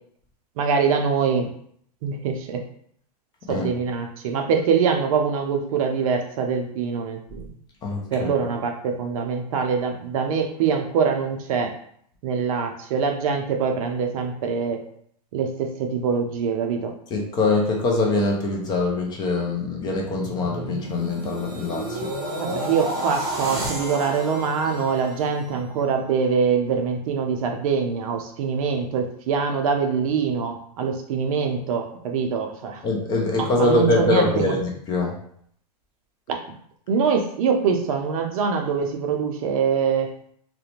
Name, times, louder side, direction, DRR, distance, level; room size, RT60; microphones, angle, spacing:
voice 1, 0.6-1.5 2.0-2.6 3.5-7.5 8.1-11.7 12.2-14.8 15.3-16.9 22.4-32.8 33.4-34.6 36.3-36.4 36.9-40.1, right 6 dB, 55° right, 4 dB, 0.5 m, -24 dB
voice 2, 7.8-8.3 17.1-22.1 32.8-35.1, left 2 dB, 20° left, 0 dB, 0.4 m, -23 dB
sound 1, 19.8-25.9 26.3-26.6, right 1 dB, 15° right, 0.8 m, -32 dB
2.4 x 2.1 x 2.9 m, 0.65 s
hypercardioid pair, 135°, 21 cm